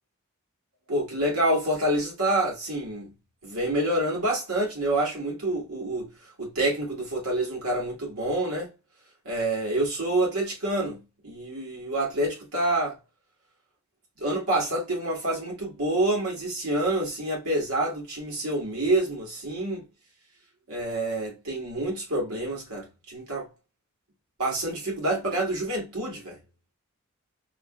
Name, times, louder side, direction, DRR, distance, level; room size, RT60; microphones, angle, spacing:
voice 1, 0.9-3.1 3.4-6.1 6.4-8.7 9.2-13.0 14.2-19.9 20.7-23.5 24.4-26.4, right 1 dB, 85° right, 1.6 m, -27 dB
3.0 x 2.8 x 2.2 m
head